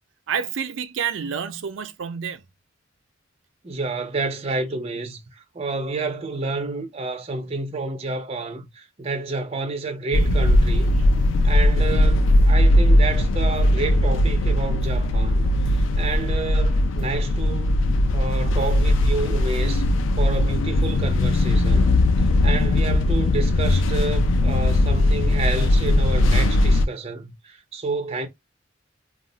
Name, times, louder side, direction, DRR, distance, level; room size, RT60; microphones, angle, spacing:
voice 1, 0.3-2.4, right 7 dB, 90° right, 0.5 m, -28 dB
voice 2, 3.6-11.0 11.4-17.7 18.1-19.9 20.2-28.3, right 3 dB, 30° right, 0.5 m, -30 dB
sound 1, 10.1-26.9, left 1 dB, 85° left, 0.4 m, -19 dB
2.4 x 2.1 x 3.7 m
head